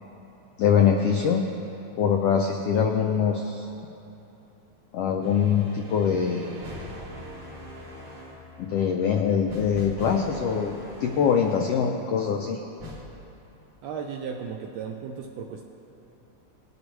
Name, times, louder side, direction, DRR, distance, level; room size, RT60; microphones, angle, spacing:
voice 1, 0.6-1.4 2.0-3.7 4.9-6.5 8.6-12.6, left 7 dB, 90° left, 3 dB, 1.3 m, -23 dB
sound 1, 5.2-11.9 12.8-13.1, equal, 55° right, 2.0 m, -42 dB
voice 2, 13.8-15.6, right 6 dB, 80° right, 3 dB, 1.5 m, -35 dB
19.0 x 8.3 x 3.1 m, 3.0 s
omnidirectional pair, 3.4 m